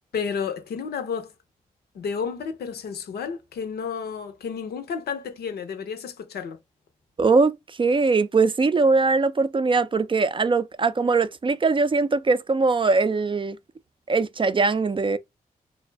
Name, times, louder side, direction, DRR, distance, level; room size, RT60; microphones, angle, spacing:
voice 1, 0.1-1.3 1.9-6.6, left 6 dB, 80° left, 0.6 m, -31 dB
voice 2, 7.2-13.6 14.1-15.2, right 4 dB, 30° right, 0.4 m, -21 dB
2.6 x 2.0 x 3.2 m
supercardioid pair, 40°, 16 cm